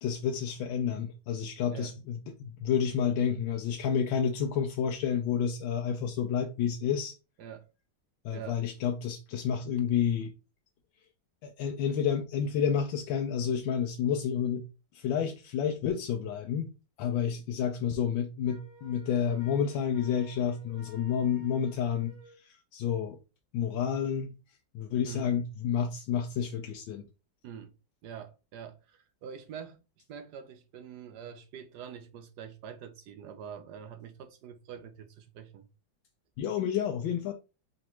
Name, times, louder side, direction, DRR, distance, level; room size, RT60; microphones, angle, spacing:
voice 1, 0.0-7.1 8.2-10.3 11.4-14.6 14.9-16.7 17.0-23.2 23.5-24.3 24.7-27.0 36.4-37.3, left 8 dB, 85° left, 1.4 m, -30 dB
voice 2, 7.4-7.7 8.3-8.6 25.0-25.3 27.4-27.7 28.0-29.8 30.1-35.7, right 8 dB, 70° right, 1.1 m, -45 dB
Wind instrument woodwind instrument, 18.5-22.4, equal, 50° right, 2.7 m, -56 dB
5.0 x 3.1 x 3.0 m
omnidirectional pair, 2.1 m